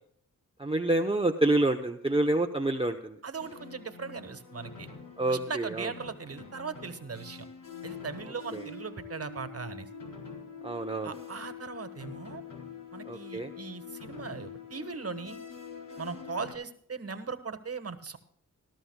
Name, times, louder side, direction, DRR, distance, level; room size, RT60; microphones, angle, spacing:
voice 1, 0.6-3.2 5.2-5.9 8.5-8.6 10.6-11.1 13.1-13.5, right 2 dB, 15° right, 3 dB, 0.9 m, -27 dB
voice 2, 3.2-4.9 5.3-7.5 7.8-9.9 11.0-12.4 12.9-15.4 16.0-18.2, right 5 dB, 45° right, 10 dB, 1.5 m, -39 dB
sound 1, 3.4-16.5, left 6 dB, 70° left, 4.6 m, -45 dB
20.0 x 13.0 x 2.3 m, 0.64 s
cardioid pair, 75°, 33 cm